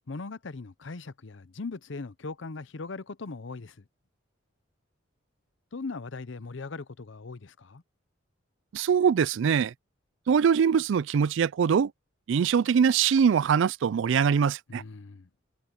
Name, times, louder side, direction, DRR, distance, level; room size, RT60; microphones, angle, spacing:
voice 1, 0.1-3.8 5.7-7.8 14.7-15.3, left 3 dB, 70° left, 0.7 m, -39 dB
voice 2, 8.7-9.7 10.3-11.9 12.3-14.8, right 7 dB, 70° right, 0.3 m, -23 dB
head